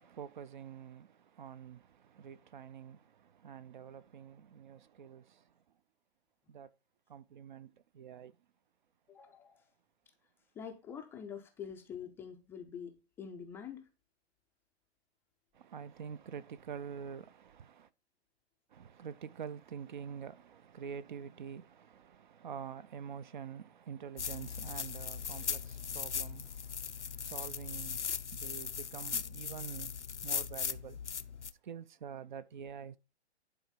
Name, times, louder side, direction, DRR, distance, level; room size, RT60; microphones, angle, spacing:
voice 1, 0.0-5.6 6.5-6.7 7.1-8.4 15.5-17.9 18.7-31.0 31.6-33.0, right 7 dB, 45° right, 0.6 m, -47 dB
voice 2, 9.1-9.7 10.5-13.9, left 7 dB, 5° left, 0.5 m, -46 dB
sound 1, 24.2-31.5, left 7 dB, 85° left, 0.7 m, -39 dB
10.0 x 4.6 x 5.2 m
figure-of-eight pair, 125°, 34 cm